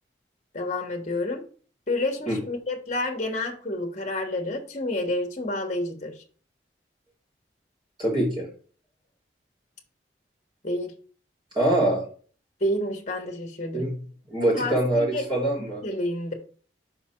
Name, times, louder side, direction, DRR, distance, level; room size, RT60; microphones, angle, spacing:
voice 1, 0.5-1.4 1.9-6.1 10.6-10.9 12.6-13.9 14.5-15.3 15.8-16.3, left 1 dB, 45° left, 3 dB, 1.2 m, -29 dB
voice 2, 8.0-8.5 11.5-12.0 13.7-13.9 14.3-15.8, right 1 dB, 30° right, -5 dB, 3.4 m, -24 dB
5.5 x 4.9 x 4.4 m, 0.42 s
head